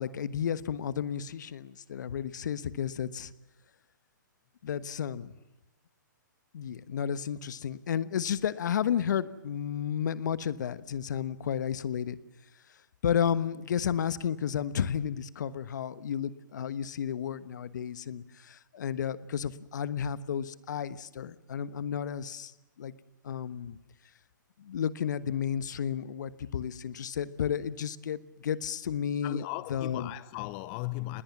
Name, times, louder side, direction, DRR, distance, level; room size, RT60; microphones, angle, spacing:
voice 1, 0.0-3.3 4.6-5.3 6.5-12.2 13.0-22.5 22.8-22.9 23.2-23.8 24.6-30.1, left 8 dB, 65° left, 1.2 m, -32 dB
voice 2, 29.2-31.2, left 19 dB, 35° left, 0.8 m, -37 dB
27.5 x 20.5 x 7.3 m
hypercardioid pair, 135°, 11 cm